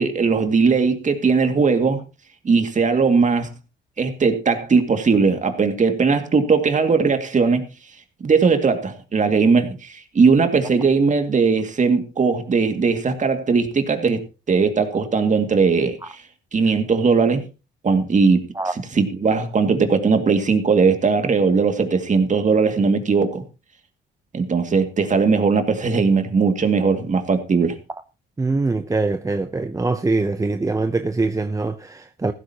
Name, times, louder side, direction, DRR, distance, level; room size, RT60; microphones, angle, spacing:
voice 1, 0.0-2.0 2.4-3.5 4.0-7.6 8.2-14.2 14.5-16.2 16.5-17.4 17.8-18.5 18.7-23.4 24.3-27.8, right 5 dB, 40° right, 2.2 m, -19 dB
voice 2, 28.4-32.3, right 3 dB, 15° right, 0.7 m, -23 dB
15.0 x 13.0 x 2.9 m
cardioid pair, 90°, 20 cm